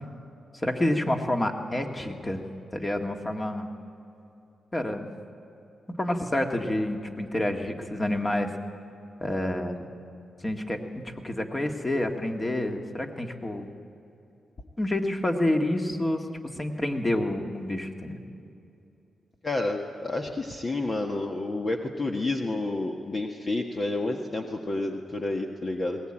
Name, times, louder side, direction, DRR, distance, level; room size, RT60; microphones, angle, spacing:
voice 1, 0.5-2.4 2.7-3.7 4.7-5.1 5.9-8.5 9.2-9.9 10.4-13.7 14.8-16.3 16.5-18.2, left 1 dB, 25° left, 4 dB, 2.1 m, -28 dB
voice 2, 19.4-26.0, left 2 dB, 40° left, 2 dB, 1.5 m, -30 dB
20.5 x 18.5 x 8.9 m, 2.7 s
cardioid pair, 75°, 0 cm